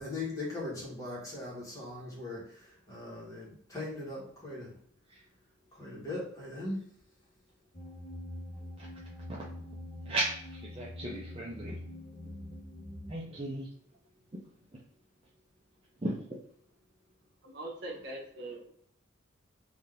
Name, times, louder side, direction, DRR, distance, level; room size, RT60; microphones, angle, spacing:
voice 1, 0.0-4.7 5.7-6.8, left 2 dB, 15° left, -6 dB, 1.5 m, -39 dB
sound 1, 7.7-13.1, left 1 dB, 35° left, 0.9 m, -44 dB
voice 2, 10.1-11.8 13.1-13.7 16.0-16.1, right 2 dB, 30° right, -5 dB, 0.6 m, -35 dB
voice 3, 17.4-18.7, right 2 dB, 60° right, -1 dB, 0.9 m, -42 dB
3.6 x 2.8 x 3.6 m, 0.63 s
head